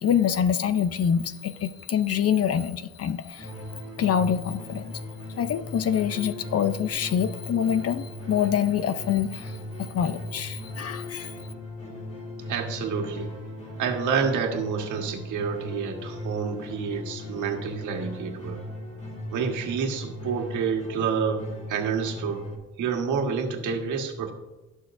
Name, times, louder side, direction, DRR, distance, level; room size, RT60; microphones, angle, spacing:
voice 1, 0.0-3.5 4.0-4.9 5.4-11.5, left 8 dB, 50° left, 12 dB, 0.7 m, -26 dB
sound 1, 3.4-22.6, left 1 dB, 25° left, 3.2 m, -38 dB
voice 2, 12.5-13.3 13.8-18.6 19.3-22.5 22.8-24.3, right 6 dB, 80° right, 2 dB, 1.7 m, -28 dB
17.0 x 6.4 x 2.6 m, 1.1 s
cardioid pair, 90°, 30 cm